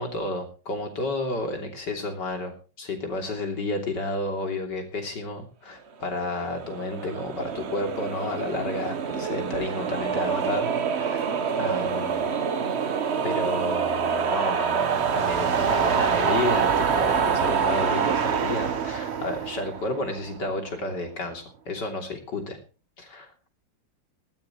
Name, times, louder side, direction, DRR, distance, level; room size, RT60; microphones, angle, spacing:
voice 1, 0.0-10.7 11.0-11.2 11.6-12.3 13.2-22.6 23.0-23.3, left 2 dB, 60° left, 4 dB, 3.7 m, -31 dB
sound 1, 6.2-20.5, right 6 dB, 45° right, 1.0 m, -26 dB
19.0 x 14.0 x 3.1 m, 0.35 s
omnidirectional pair, 2.1 m